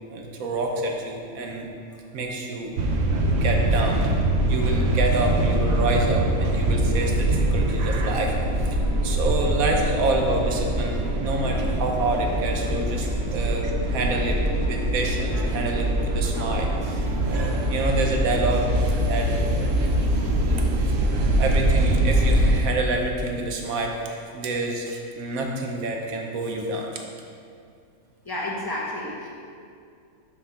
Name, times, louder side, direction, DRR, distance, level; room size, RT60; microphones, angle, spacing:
voice 1, 0.1-1.7 2.1-2.7 3.2-4.0 4.5-8.3 9.0-18.7 19.1-19.8 20.2-20.7 21.4-26.9, right 2 dB, 85° right, 1 dB, 1.2 m, -28 dB
sound 1, 2.8-22.6, right 1 dB, 60° right, 0.8 m, -23 dB
voice 2, 28.2-29.3, left 1 dB, 20° left, -5 dB, 1.0 m, -31 dB
6.5 x 3.7 x 5.7 m, 2.3 s
omnidirectional pair, 1.4 m